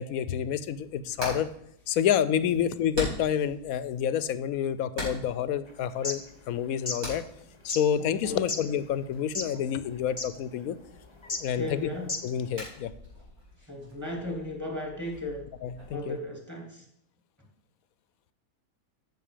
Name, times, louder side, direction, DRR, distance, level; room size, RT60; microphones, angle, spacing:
voice 1, 0.0-1.5 1.9-6.2 6.5-7.2 7.6-10.8 11.4-11.9 12.2-12.9 15.6-16.2, left 9 dB, 75° left, 15 dB, 1.0 m, -28 dB
Hammer, 0.7-15.9, left 1 dB, 85° right, 5.6 m, -44 dB
sound 1, 5.9-6.2 6.7-7.0 7.7-7.8 8.5-8.6 9.2-9.6 9.9-10.0 10.2-10.3 11.2-11.4 12.0-12.4, left 3 dB, 20° left, 0.9 m, -32 dB
voice 2, 11.6-12.1 13.7-15.4 15.9-16.8, left 1 dB, 10° right, 0 dB, 2.7 m, -35 dB
14.5 x 6.3 x 5.1 m, 0.73 s
omnidirectional pair, 1.6 m